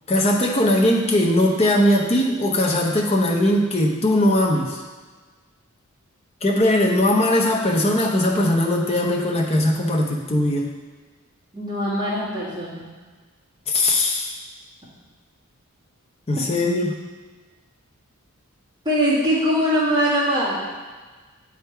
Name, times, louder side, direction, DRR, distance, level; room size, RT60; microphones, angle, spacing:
voice 1, 0.1-4.8 6.4-10.7 13.7-14.4 16.3-16.9, left 1 dB, 30° left, -1 dB, 0.8 m, -20 dB
voice 2, 11.5-12.8 18.9-20.6, equal, 20° right, -9 dB, 1.9 m, -21 dB
7.9 x 3.6 x 4.5 m, 1.4 s
head